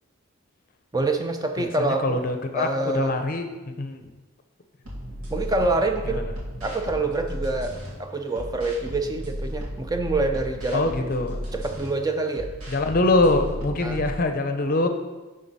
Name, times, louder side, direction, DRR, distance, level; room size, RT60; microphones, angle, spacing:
voice 1, 0.9-2.2 2.5-3.1 5.3-6.3 6.6-11.1 11.5-12.5 13.8-14.0, right 2 dB, 15° right, 5 dB, 0.4 m, -26 dB
voice 2, 1.6-3.5 3.8-4.1 6.2-6.3 10.7-11.4 12.7-14.9, left 2 dB, 40° left, 6 dB, 0.6 m, -24 dB
sound 1, 4.8-7.9 8.3-11.9 12.3-14.1, equal, 90° right, 2.1 m, -34 dB
11.5 x 3.8 x 4.1 m, 1.2 s
head